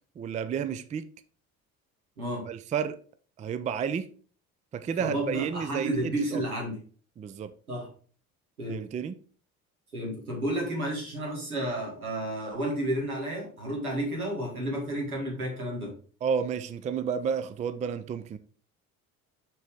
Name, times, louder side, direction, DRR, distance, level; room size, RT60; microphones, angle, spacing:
voice 1, 0.2-1.1 2.4-3.0 3.4-4.1 4.7-6.4 7.2-7.5 8.7-9.2 16.2-18.4, right 7 dB, 20° right, 0.4 m, -31 dB
voice 2, 5.0-6.8 7.7-7.9 8.6-8.8 9.9-15.9, right 1 dB, 80° right, 2.4 m, -31 dB
6.5 x 5.9 x 3.5 m
figure-of-eight pair, 55°, 43 cm